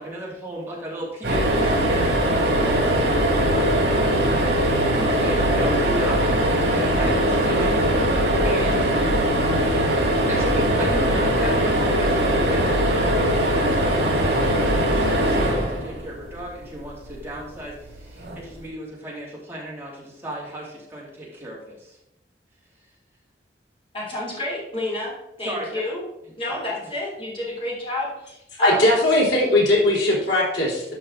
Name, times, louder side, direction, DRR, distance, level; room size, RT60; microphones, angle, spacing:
voice 1, 0.0-2.1 2.5-3.1 4.9-8.2 8.4-9.0 10.3-22.0 25.4-25.8 26.5-26.6, right 1 dB, 15° right, -5 dB, 2.7 m, -34 dB
sound 1, 1.2-16.5 18.2-18.4 18.7-18.8, equal, 65° right, 3.6 m, -21 dB
voice 2, 23.9-26.0 26.4-28.9, left 1 dB, 30° left, -4 dB, 3.3 m, -30 dB
voice 3, 28.6-30.8, left 1 dB, 85° left, -4 dB, 3.8 m, -19 dB
12.0 x 5.4 x 3.9 m, 0.83 s
head